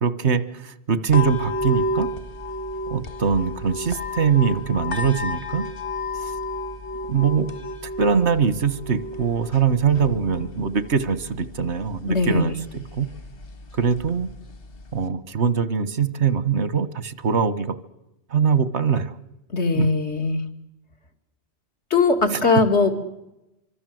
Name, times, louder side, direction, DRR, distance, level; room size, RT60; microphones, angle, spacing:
voice 1, 0.0-2.1 2.9-5.7 6.2-6.3 7.1-7.5 8.0-13.1 13.7-14.3 14.9-17.8 18.3-19.1 19.7-19.9 22.3-22.4, right 6 dB, 85° right, 15 dB, 1.6 m, -22 dB
sound 1, 1.1-15.1, left 1 dB, 60° left, 1.9 m, -32 dB
voice 2, 12.1-12.6 19.5-20.4 21.9-22.9, left 3 dB, 85° left, 5 dB, 2.7 m, -20 dB
25.0 x 25.0 x 7.8 m, 0.92 s
omnidirectional pair, 1.1 m